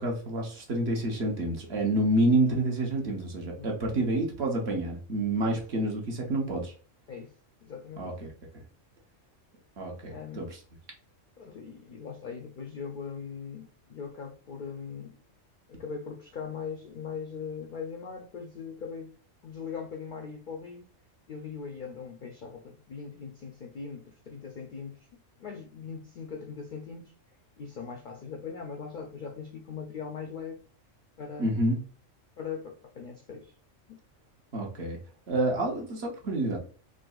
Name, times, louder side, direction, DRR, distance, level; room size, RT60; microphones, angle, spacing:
voice 1, 0.0-6.7 8.0-8.3 9.8-10.5 31.4-31.8 34.5-35.0 35.3-36.6, right 1 dB, 55° right, 0 dB, 1.1 m, -28 dB
voice 2, 7.6-8.1 10.1-10.5 11.4-15.2 15.7-19.1 19.4-20.9 21.3-25.1 25.4-27.1 27.6-30.6 31.2-31.7 32.4-33.5 33.9-34.0, left 6 dB, 65° left, 2 dB, 0.5 m, -40 dB
3.9 x 2.5 x 2.3 m, 0.41 s
omnidirectional pair, 1.3 m